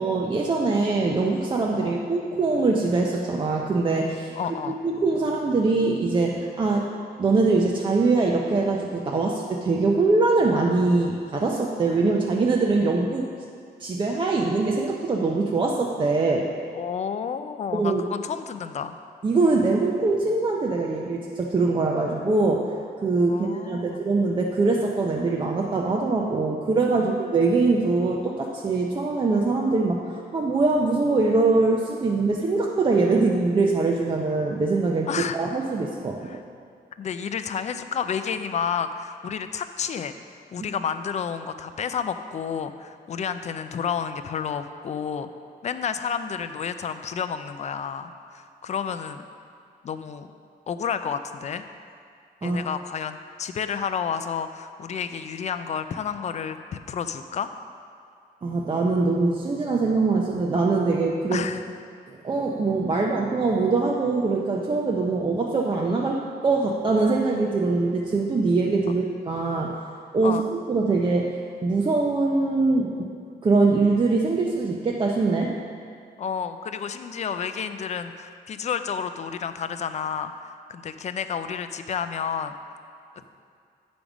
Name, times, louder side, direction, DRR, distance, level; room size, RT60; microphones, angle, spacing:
voice 1, 0.0-4.3 4.8-6.9 7.2-13.3 13.8-16.5 17.7-18.0 19.2-22.7 23.0-35.1 35.3-36.2 52.4-52.6 58.4-61.4 62.2-73.1 73.4-75.6, right 3 dB, 30° right, -1 dB, 0.6 m, -23 dB
voice 2, 4.4-4.8 16.7-18.9 23.2-24.0 27.0-27.1 35.1-35.4 36.2-36.4 37.0-45.3 45.6-49.3 49.8-50.3 50.7-51.6 52.4-57.5 61.3-61.8 62.9-63.0 68.9-69.0 70.2-70.5 76.2-82.5, left 7 dB, 45° left, 10 dB, 0.4 m, -31 dB
8.5 x 5.2 x 6.1 m, 2.3 s
wide cardioid pair, 145°, 16 cm